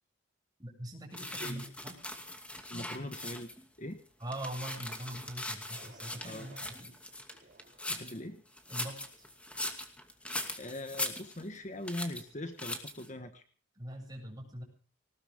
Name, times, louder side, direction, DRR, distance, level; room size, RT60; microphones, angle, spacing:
voice 1, 0.6-2.0 4.2-6.9 8.7-9.0 13.7-14.6, right 1 dB, 20° right, 2 dB, 7.6 m, -42 dB
sound 1, 1.1-3.7 4.1-8.2 8.6-11.6 11.9-12.2 12.6-13.1, left 1 dB, 5° left, 2.4 m, -40 dB
voice 2, 2.7-3.5 3.8-4.0 6.2-6.5 7.9-8.4 10.6-13.4, left 1 dB, 35° left, 7 dB, 1.5 m, -41 dB
sound 2, 4.8-5.1 5.7-6.8 7.3-8.3 8.9-9.3, right 3 dB, 35° right, 5.7 m, -58 dB
20.0 x 19.5 x 3.7 m, 0.42 s
head